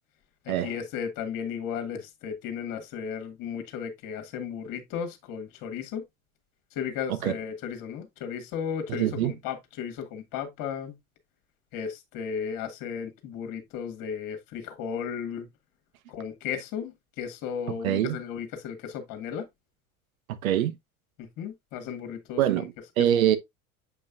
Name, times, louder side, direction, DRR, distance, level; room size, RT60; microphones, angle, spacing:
voice 1, 0.4-6.0 6.7-11.0 11.7-15.5 16.1-19.5 21.2-22.7, left 7 dB, 50° left, 2.0 m, -35 dB
voice 2, 8.9-9.3 17.8-18.2 20.3-20.7 22.4-23.4, right 11 dB, 70° right, 1.1 m, -24 dB
8.1 x 5.3 x 2.5 m
hypercardioid pair, 75°, 43 cm